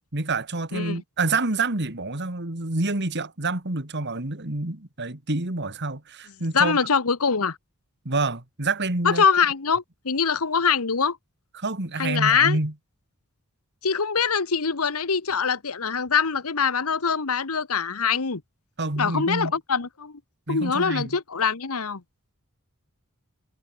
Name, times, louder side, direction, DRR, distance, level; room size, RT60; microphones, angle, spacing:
voice 1, 0.1-6.8 8.0-9.2 11.5-12.7 18.8-19.5 20.5-21.2, right 3 dB, 55° right, 2.6 m, -27 dB
voice 2, 6.5-7.6 9.0-11.2 12.0-12.6 13.8-18.4 19.0-20.2 20.5-22.0, left 6 dB, 80° left, 1.3 m, -23 dB
head